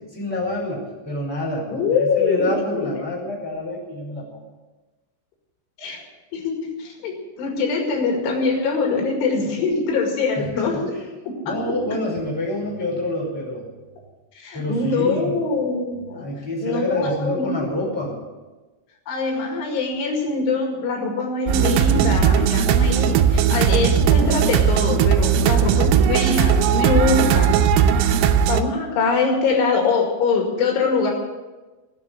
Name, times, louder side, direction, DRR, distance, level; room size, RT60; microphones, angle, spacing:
voice 1, 0.1-4.4 10.5-10.6 11.4-13.7 14.5-15.4 16.2-18.2, left 1 dB, 5° right, -3 dB, 4.0 m, -27 dB
voice 2, 1.7-2.9 5.8-6.0 6.3-10.9 11.2-11.6 14.4-16.2 16.6-17.7 19.1-27.6 28.5-31.1, left 4 dB, 70° left, 1 dB, 4.5 m, -23 dB
sound 1, 21.5-28.6, right 8 dB, 85° right, 3.4 m, -18 dB
19.5 x 7.3 x 9.4 m, 1.2 s
omnidirectional pair, 5.9 m